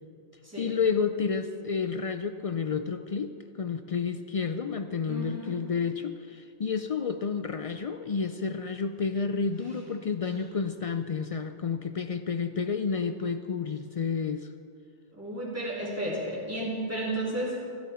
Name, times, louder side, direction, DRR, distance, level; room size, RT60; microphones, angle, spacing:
voice 1, 0.6-14.5, left 5 dB, 55° left, 9 dB, 0.4 m, -30 dB
voice 2, 5.1-5.6 9.6-9.7 15.1-17.5, right 1 dB, 15° right, -7 dB, 3.3 m, -33 dB
15.5 x 10.5 x 4.3 m, 2.4 s
omnidirectional pair, 1.1 m